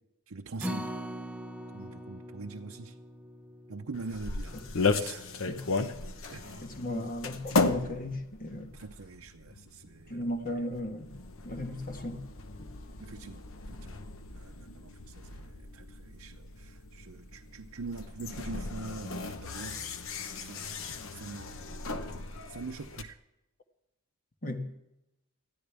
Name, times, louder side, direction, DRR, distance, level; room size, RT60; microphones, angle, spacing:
voice 1, 0.3-0.9 1.7-3.0 3.7-5.6 6.3-7.2 8.7-10.3 13.0-13.4 13.8-14.0 14.3-19.9 20.4-20.8 21.1-21.9 22.5-23.2, right 3 dB, 65° right, 0.7 m, -44 dB
Acoustic guitar, 0.6-6.9 7.3-7.4 7.8-7.9, equal, 5° right, 0.7 m, -43 dB
sound 1, 3.9-23.0, left 3 dB, 60° left, 1.0 m, -36 dB
voice 2, 6.6-8.7 10.1-11.1 11.4-12.2 24.4-24.7, left 1 dB, 40° left, 1.5 m, -36 dB
20.5 x 14.0 x 3.5 m
head